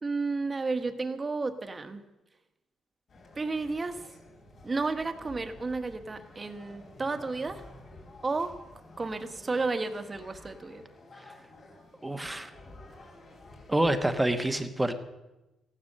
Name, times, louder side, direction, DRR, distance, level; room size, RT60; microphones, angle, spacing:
voice 1, 0.0-2.0 3.3-4.1 4.6-7.6 8.2-8.6 9.0-10.8, right 3 dB, 25° right, 9 dB, 1.4 m, -32 dB
sound 1, 3.1-14.4, left 2 dB, 55° left, 3.7 m, -51 dB
voice 2, 12.0-12.5 13.7-14.9, right 1 dB, 10° right, 9 dB, 1.1 m, -27 dB
15.0 x 11.5 x 6.6 m, 1.0 s
cardioid pair, 90°, 0 cm